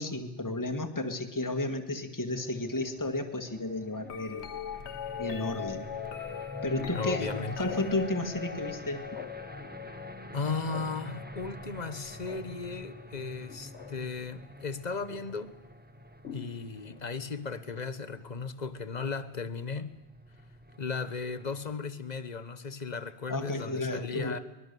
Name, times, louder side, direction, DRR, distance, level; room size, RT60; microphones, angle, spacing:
voice 1, 0.0-4.4 5.2-5.9 6.6-7.3 7.6-9.0 23.3-24.4, left 2 dB, 15° left, 1.7 m, -32 dB
sound 1, 2.3-21.7, equal, 10° right, 1.0 m, -47 dB
sound 2, 4.0-14.2 15.1-15.5 16.2-17.2 19.0-19.1, left 8 dB, 85° left, 1.3 m, -41 dB
voice 2, 6.9-7.7 10.3-15.5 16.3-20.0 20.8-24.4, left 4 dB, 40° left, 1.2 m, -36 dB
25.0 x 21.0 x 6.8 m
omnidirectional pair, 1.1 m